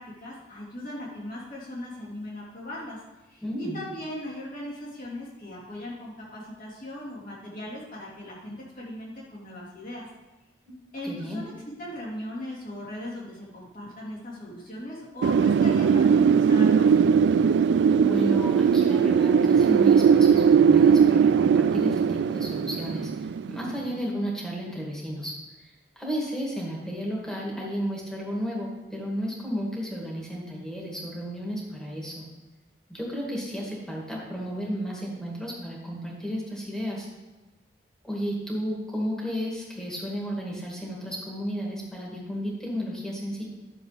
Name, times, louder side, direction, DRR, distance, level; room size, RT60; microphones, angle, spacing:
voice 1, 0.0-10.1 10.9-11.5 11.8-17.1, left 1 dB, 50° left, -6 dB, 3.3 m, -38 dB
voice 2, 3.4-3.8 10.6-10.8 11.0-11.5 17.9-25.3 25.6-25.7 26.0-32.2 32.9-37.1 38.0-43.4, equal, 5° left, -3 dB, 2.3 m, -33 dB
Wind, 15.2-23.9, right 6 dB, 75° right, 0.3 m, -19 dB
11.5 x 7.0 x 3.5 m, 1.1 s
head